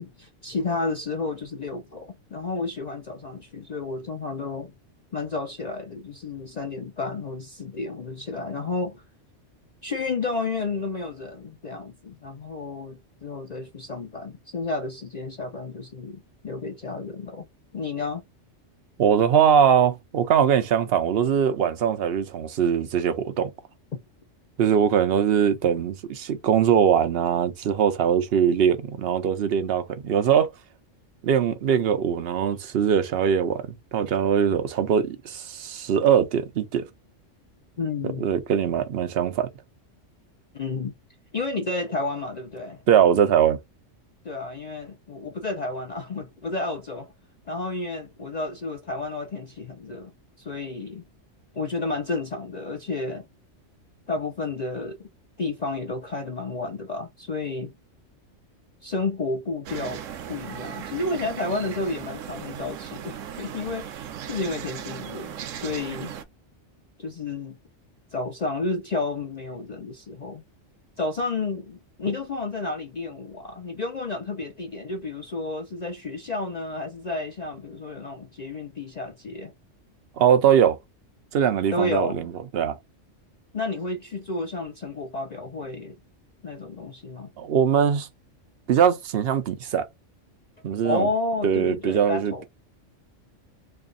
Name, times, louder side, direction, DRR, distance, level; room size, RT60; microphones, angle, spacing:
voice 1, 0.0-4.7 5.1-9.0 9.8-17.5 17.7-18.2 23.9-24.0 37.8-38.3 40.5-40.9 41.3-42.8 44.2-47.1 47.5-50.1 50.4-51.0 51.5-53.3 54.1-55.1 55.4-57.7 58.8-66.1 67.0-67.6 68.1-70.4 71.0-79.5 81.7-82.3 83.5-86.0 86.4-87.3 90.8-92.4, left 3 dB, 45° left, 0.6 m, -31 dB
voice 2, 19.0-23.5 24.6-30.5 31.2-36.9 38.2-39.5 42.9-43.6 80.2-80.8 81.3-82.8 87.4-88.1 88.7-89.9 90.6-91.1 91.4-92.4, right 8 dB, 60° right, 0.8 m, -21 dB
sound 1, 59.7-66.2, right 9 dB, 85° right, 1.0 m, -37 dB
3.3 x 2.4 x 3.8 m
omnidirectional pair, 1.3 m